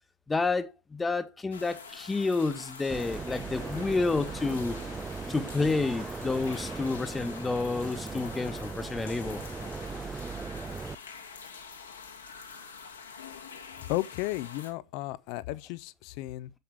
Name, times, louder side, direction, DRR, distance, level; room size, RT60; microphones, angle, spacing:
voice 1, 0.3-4.8 5.3-9.4, left 3 dB, 10° left, 0.9 m, -30 dB
sound 1, 1.5-14.7, left 5 dB, 70° left, 1.6 m, -46 dB
sound 2, 2.9-11.0, right 4 dB, 10° right, 0.4 m, -38 dB
voice 2, 13.9-16.5, left 17 dB, 45° left, 0.5 m, -34 dB
7.8 x 7.1 x 3.5 m
figure-of-eight pair, 90°, 0 cm